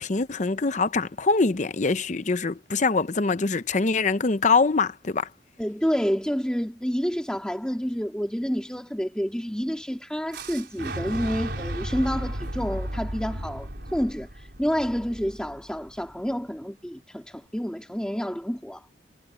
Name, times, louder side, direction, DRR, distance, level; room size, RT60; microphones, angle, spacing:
voice 1, 0.0-5.3, left 4 dB, 40° left, 0.7 m, -24 dB
voice 2, 5.6-18.9, equal, 5° left, 1.9 m, -29 dB
Fire / Explosion, 10.3-16.2, right 1 dB, 60° right, 5.4 m, -34 dB
head